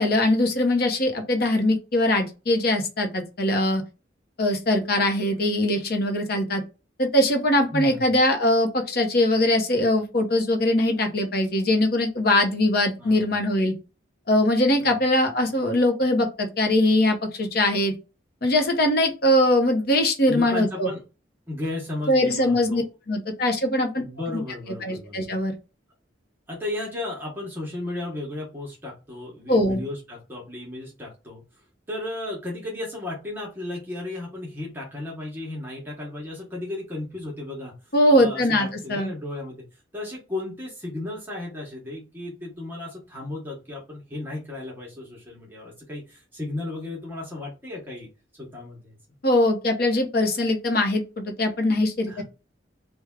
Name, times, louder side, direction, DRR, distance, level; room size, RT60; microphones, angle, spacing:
voice 1, 0.0-3.8 4.4-6.6 7.0-13.7 14.3-17.9 18.4-20.9 22.1-23.9 24.3-24.4 24.8-25.5 29.5-29.8 37.9-39.1 49.2-52.2, left 1 dB, 55° left, 4 dB, 0.8 m, -22 dB
voice 2, 7.7-8.0 13.0-13.4 14.8-15.0 20.3-21.0 21.5-22.8 23.9-25.3 26.5-31.4 31.9-37.7 38.1-39.6 39.9-48.1 48.3-49.0 52.1-52.2, left 2 dB, 10° right, -3 dB, 0.9 m, -34 dB
3.3 x 2.2 x 3.5 m, 0.31 s
head